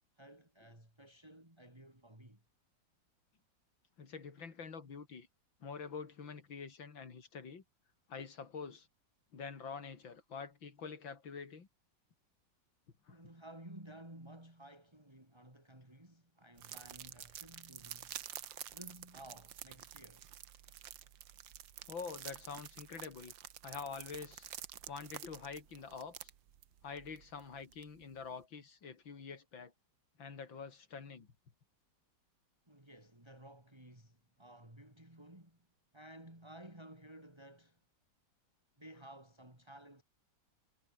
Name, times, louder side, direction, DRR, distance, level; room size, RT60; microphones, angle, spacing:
voice 1, 0.2-2.4 13.1-20.3 32.7-35.7 35.9-37.8 38.8-40.0, right 1 dB, 15° right, 5.1 m, -55 dB
voice 2, 4.0-5.3 5.6-7.6 8.1-8.9 9.3-11.7 13.1-13.2 21.9-23.3 23.6-24.5 24.9-26.3 26.8-29.7 30.2-31.3, left 5 dB, 85° left, 3.5 m, -46 dB
sound 1, 16.6-28.3, right 11 dB, 80° right, 1.8 m, -50 dB
omnidirectional pair, 2.0 m